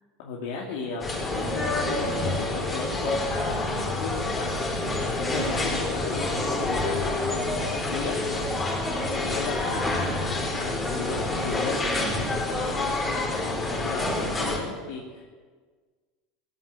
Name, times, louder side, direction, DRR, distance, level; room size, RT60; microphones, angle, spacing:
voice 1, 0.2-1.1 1.3-4.5 5.0-11.8 12.1-15.3, left 4 dB, 80° left, -3 dB, 2.7 m, -36 dB
sound 1, 1.0-14.6, left 2 dB, 20° left, 4.2 m, -27 dB
19.5 x 9.9 x 7.5 m, 1.5 s
supercardioid pair, 130°, 0 cm